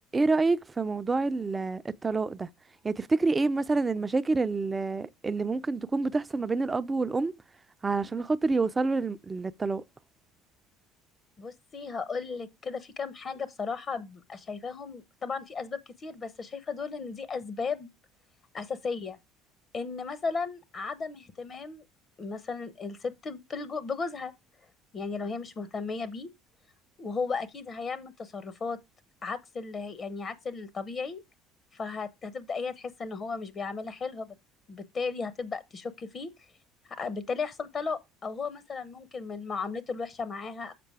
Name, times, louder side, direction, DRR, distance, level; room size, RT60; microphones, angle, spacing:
voice 1, 0.1-2.5 2.8-7.3 7.8-9.8, right 3 dB, 25° right, 0.6 m, -27 dB
voice 2, 11.4-17.9 18.5-19.2 19.7-21.8 22.2-24.3 24.9-26.3 27.0-28.8 29.2-31.2 31.7-34.3 34.7-36.3 36.9-40.7, left 4 dB, 40° left, 1.0 m, -35 dB
6.9 x 5.2 x 4.8 m
hypercardioid pair, 65°, 0 cm